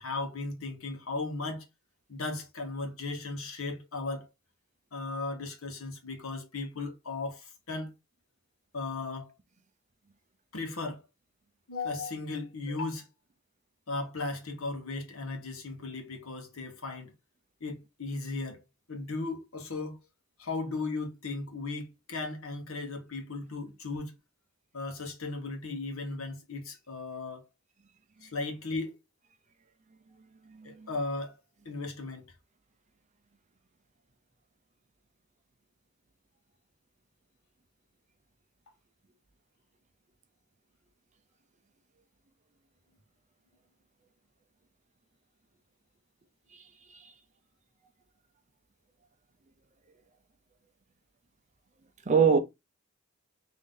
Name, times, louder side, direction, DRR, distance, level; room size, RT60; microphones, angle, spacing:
voice 1, 0.0-1.7 2.1-4.3 4.9-7.9 8.7-9.3 10.5-11.0 11.7-13.1 13.9-17.1 17.6-18.6 18.9-20.0 20.4-24.2 24.7-27.5 28.2-29.0 30.6-31.4 31.6-32.2, left 3 dB, 75° left, 1.1 m, -36 dB
voice 2, 30.4-30.9 46.5-47.1 52.1-52.4, right 6 dB, 35° right, 0.6 m, -26 dB
3.6 x 2.7 x 3.7 m
head